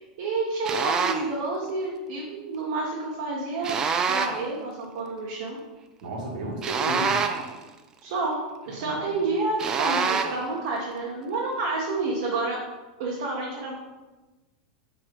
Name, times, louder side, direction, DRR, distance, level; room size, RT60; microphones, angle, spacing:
voice 1, 0.0-3.8 4.1-5.6 8.0-12.6 13.0-13.7, right 3 dB, 50° right, -4 dB, 1.4 m, -29 dB
sound 1, 0.6-1.3 3.6-4.5 6.6-7.6 9.6-10.5, right 5 dB, 15° right, 0.3 m, -26 dB
voice 2, 6.0-7.2 8.7-9.1, equal, 80° right, -2 dB, 2.4 m, -33 dB
8.6 x 3.3 x 5.4 m, 1.1 s
supercardioid pair, 180°, 4 cm